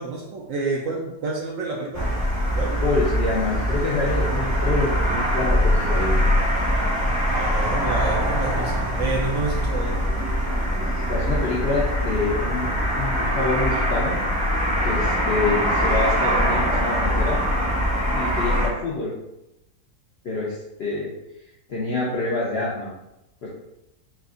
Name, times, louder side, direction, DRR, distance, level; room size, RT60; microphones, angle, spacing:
voice 1, 0.0-2.1 2.5-2.8 7.3-10.0, right 3 dB, 70° right, -1 dB, 0.8 m, -29 dB
sound 1, 1.9-18.7, equal, 15° right, 0.6 m, -23 dB
voice 2, 2.8-6.2 11.1-12.7 12.9-14.2 14.8-17.4 18.1-19.1 20.2-21.1 21.7-22.9 23.4-23.5, left 3 dB, 65° left, -5 dB, 0.6 m, -26 dB
4.5 x 2.4 x 2.4 m, 0.89 s
omnidirectional pair, 1.7 m